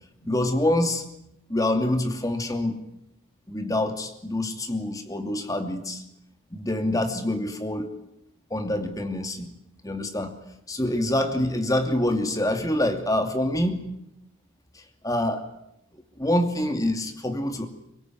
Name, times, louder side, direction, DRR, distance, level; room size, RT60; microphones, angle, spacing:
voice 1, 0.2-1.0 1.5-2.8 3.5-6.0 6.5-7.9 8.5-9.5 9.8-10.4 10.7-13.8 14.7-15.4 16.2-17.7, left 1 dB, 15° left, 6 dB, 2.7 m, -26 dB
24.5 x 21.0 x 9.5 m, 0.79 s
head